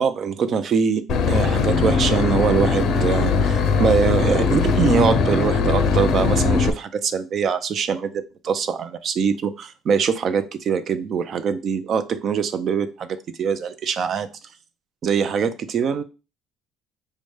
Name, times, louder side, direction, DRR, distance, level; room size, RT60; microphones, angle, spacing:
voice 1, 0.0-14.3 15.0-16.0, right 6 dB, 50° right, 0.5 m, -23 dB
Boat Water vehicle / Engine, 1.1-6.7, left 5 dB, 65° left, 0.5 m, -20 dB
4.9 x 2.2 x 3.2 m
cardioid pair, 95°, 0 cm